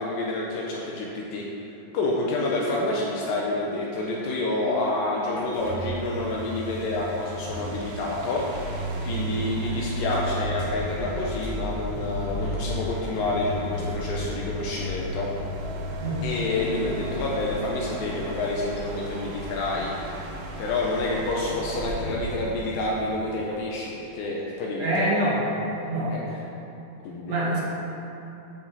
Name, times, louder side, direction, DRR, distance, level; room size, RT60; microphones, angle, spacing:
voice 1, 0.0-1.5 1.9-15.3 16.2-20.3 20.6-25.2 26.1-26.4 27.1-27.4, left 2 dB, 80° left, -4 dB, 2.3 m, -28 dB
sound 1, 5.3-23.8, equal, 80° right, 2.8 m, -34 dB
voice 2, 24.8-25.4 25.9-26.1 27.3-27.6, right 1 dB, 55° right, -7 dB, 2.0 m, -25 dB
13.0 x 5.9 x 2.7 m, 3.0 s
omnidirectional pair, 4.4 m